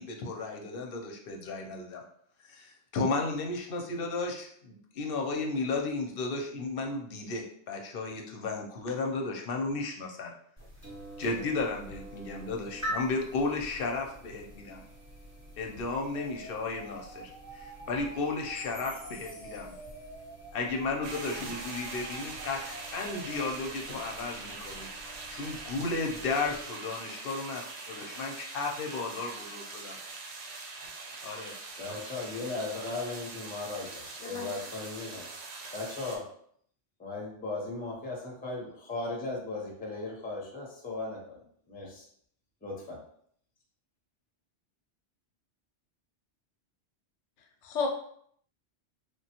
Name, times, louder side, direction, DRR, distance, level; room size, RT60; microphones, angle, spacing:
voice 1, 0.0-2.0 2.4-10.3 11.2-14.8 15.6-19.7 20.5-24.9 25.3-30.0 31.2-31.5, left 3 dB, 60° left, 1 dB, 0.7 m, -34 dB
sound 1, 10.6-26.7, equal, 15° right, 0.8 m, -46 dB
sound 2, 16.1-23.5, right 3 dB, 85° right, 0.9 m, -48 dB
sound 3, 21.0-36.2, right 3 dB, 70° right, 0.8 m, -43 dB
voice 2, 31.8-35.3 35.7-36.2 37.0-42.1 42.6-43.0, left 3 dB, 10° left, -2 dB, 0.5 m, -37 dB
voice 3, 34.2-34.5 47.6-47.9, left 4 dB, 90° left, 3 dB, 0.9 m, -33 dB
3.3 x 2.2 x 2.8 m, 0.65 s
omnidirectional pair, 1.2 m